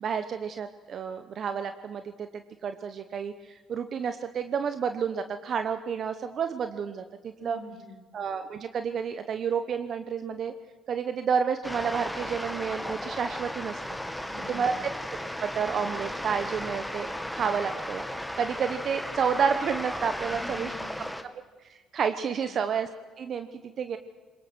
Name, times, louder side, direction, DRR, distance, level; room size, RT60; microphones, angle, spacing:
voice 1, 0.0-7.6 8.1-10.5 10.9-13.8 14.5-14.7 15.4-18.0 18.4-20.7 21.7-22.9 23.2-24.0, right 6 dB, 55° right, 9 dB, 1.1 m, -30 dB
voice 2, 7.4-8.1 14.2-14.9 20.3-21.3 22.4-22.6, left 2 dB, 10° right, 1 dB, 6.4 m, -47 dB
sound 1, 11.6-21.2, equal, 5° left, 1.8 m, -35 dB
22.5 x 20.5 x 6.2 m, 1.3 s
supercardioid pair, 65°, 0 cm